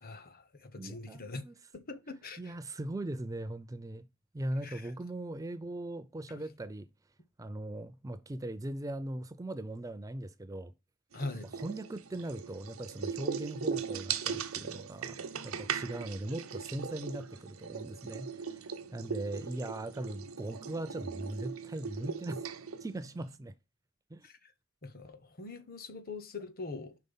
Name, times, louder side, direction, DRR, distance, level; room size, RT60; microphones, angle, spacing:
voice 1, 0.0-1.4 1.7-2.6 4.6-4.9 6.3-6.4 11.1-11.5 24.2-24.5 24.8-27.0, left 3 dB, 45° left, 0.8 m, -43 dB
voice 2, 0.8-1.6 2.4-4.1 4.3-6.9 7.4-10.7 11.5-22.5 22.8-23.5 24.1-24.3, right 1 dB, 15° right, 0.4 m, -39 dB
sound 1, 11.1-23.3, right 6 dB, 80° right, 0.8 m, -39 dB
5.4 x 3.8 x 5.4 m
head